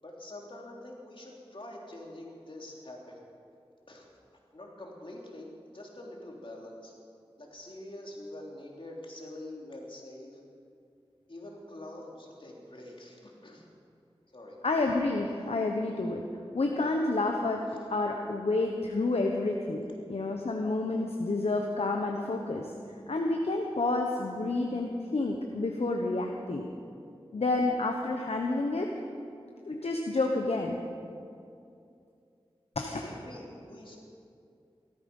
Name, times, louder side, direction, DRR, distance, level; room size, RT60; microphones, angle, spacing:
voice 1, 0.0-3.2 3.9-4.0 4.5-6.9 7.4-10.4 11.3-13.6 14.3-14.6 32.9-34.0, left 1 dB, 55° left, -2 dB, 3.2 m, -45 dB
voice 2, 14.6-16.2 16.5-17.6 17.9-19.8 20.1-22.7 23.1-26.7 27.3-28.9 29.7-30.8 32.8-33.0, left 2 dB, 85° left, 1 dB, 1.0 m, -29 dB
17.0 x 13.5 x 5.5 m, 2.5 s
wide cardioid pair, 40°, 10 cm